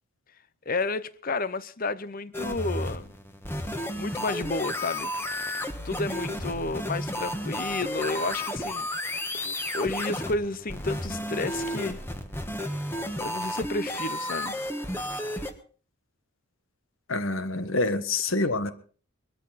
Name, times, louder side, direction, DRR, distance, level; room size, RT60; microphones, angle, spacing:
voice 1, 0.7-3.1 4.0-5.1 5.8-8.9 9.7-12.0 13.2-14.6 18.3-18.4, left 3 dB, 40° left, 0.8 m, -31 dB
sound 1, 2.3-15.5, left 1 dB, 10° left, 1.3 m, -32 dB
voice 2, 17.1-18.7, left 2 dB, 60° left, 1.4 m, -26 dB
21.5 x 13.0 x 4.2 m
head